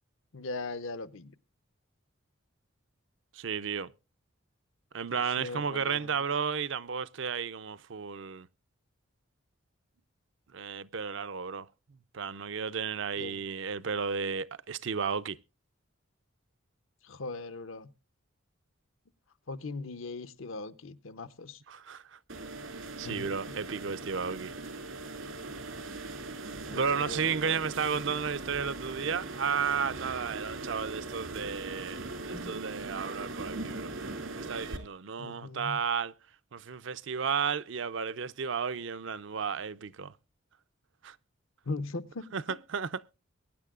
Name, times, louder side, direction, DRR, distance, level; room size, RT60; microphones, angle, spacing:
voice 1, 0.3-1.3 5.1-6.2 13.2-13.4 17.0-17.9 19.5-21.6 23.0-23.3 26.7-27.4 35.2-35.8 41.6-42.6, left 3 dB, 80° left, 0.8 m, -39 dB
voice 2, 3.3-3.9 4.9-8.5 10.5-11.7 12.1-15.4 21.7-22.2 23.0-24.5 26.7-33.9 34.3-36.1 36.5-40.1 41.0-41.2 42.3-42.4 42.7-42.9, right 6 dB, 65° right, 0.5 m, -33 dB
sound 1, 22.3-34.8, right 3 dB, 85° right, 2.5 m, -40 dB
23.0 x 10.0 x 2.4 m
head